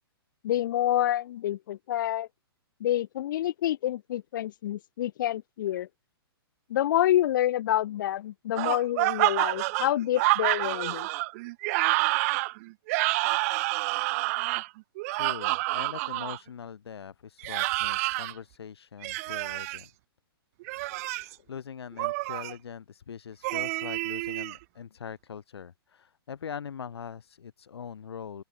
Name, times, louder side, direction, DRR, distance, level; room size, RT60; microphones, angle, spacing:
voice 1, 0.4-2.3 2.8-5.9 6.7-11.1, left 12 dB, 50° left, 1.2 m, -27 dB
sound 1, 8.6-16.4 17.4-18.3 19.0-19.8 20.6-21.3 22.0-22.5 23.4-24.6, right 22 dB, 35° right, 1.5 m, -28 dB
voice 2, 15.1-19.9 20.7-28.4, left 7 dB, 80° left, 6.5 m, -42 dB
open air
hypercardioid pair, 155°, 13 cm